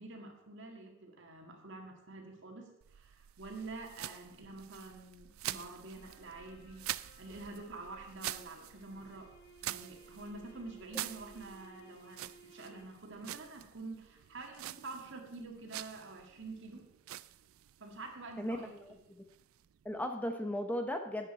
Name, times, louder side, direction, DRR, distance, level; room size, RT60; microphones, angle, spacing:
voice 1, 0.0-9.3 9.6-16.9 17.8-18.7, right 3 dB, 60° right, 3 dB, 2.0 m, -47 dB
sound 1, 2.8-20.1, right 14 dB, 80° right, 0.4 m, -47 dB
sound 2, 5.9-13.2, right 2 dB, 60° left, 2.1 m, -59 dB
voice 2, 18.4-18.9 19.8-21.3, equal, 10° left, 5 dB, 0.8 m, -36 dB
12.5 x 8.9 x 4.3 m, 0.83 s
head